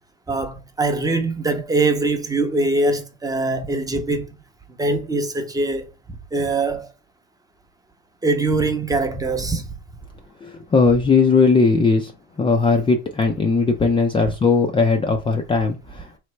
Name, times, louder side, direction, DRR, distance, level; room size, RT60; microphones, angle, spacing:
voice 1, 0.3-4.3 4.8-5.9 6.3-6.9 8.2-9.7, right 2 dB, 10° right, 0.7 m, -22 dB
voice 2, 10.4-12.1 12.4-16.1, left 4 dB, 15° left, 0.4 m, -18 dB
3.9 x 3.2 x 3.2 m
supercardioid pair, 110°, 33 cm